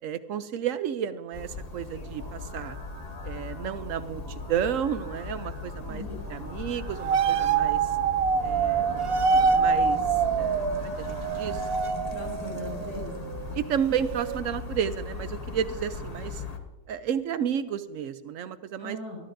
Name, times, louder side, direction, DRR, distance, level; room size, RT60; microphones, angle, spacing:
voice 1, 0.0-2.8 3.2-6.0 6.3-8.0 8.4-8.9 9.3-11.7 13.5-16.4 16.9-19.2, right 8 dB, 70° right, 13 dB, 0.9 m, -32 dB
sound 1, 1.3-16.6, left 3 dB, 30° left, 1.1 m, -38 dB
sound 2, 1.7-11.7, left 1 dB, 60° left, 2.6 m, -48 dB
voice 2, 5.9-6.2 12.1-13.3 18.8-19.2, left 1 dB, 85° left, -3 dB, 6.6 m, -38 dB
sound 3, 7.0-13.6 13.8-14.4, right 6 dB, 90° right, 0.5 m, -26 dB
22.0 x 12.5 x 2.6 m, 1.1 s
omnidirectional pair, 1.6 m